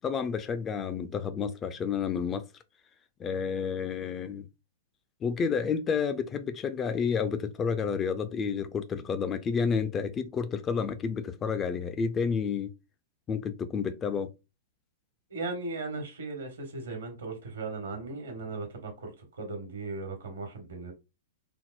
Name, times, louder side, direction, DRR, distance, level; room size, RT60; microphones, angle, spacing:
voice 1, 0.0-2.4 3.2-4.5 5.2-12.7 13.3-14.3, left 6 dB, 25° left, 0.4 m, -30 dB
voice 2, 15.3-20.9, right 3 dB, 75° right, 1.2 m, -37 dB
3.4 x 2.0 x 2.4 m
hypercardioid pair, 110°, 0 cm